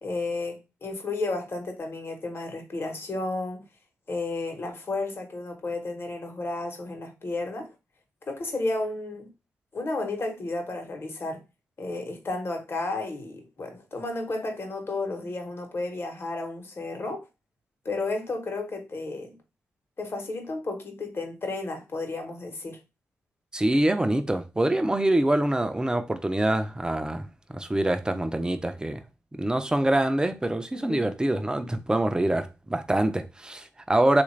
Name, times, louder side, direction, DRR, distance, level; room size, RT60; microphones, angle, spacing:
voice 1, 0.0-3.6 4.1-7.7 8.3-9.3 9.7-11.4 11.8-17.3 17.8-19.4 20.0-22.8 30.7-31.1, left 2 dB, 45° left, 1.1 m, -32 dB
voice 2, 23.5-29.0 29.4-34.2, right 1 dB, 15° right, 0.5 m, -25 dB
3.3 x 2.5 x 3.2 m
cardioid pair, 60°, 5 cm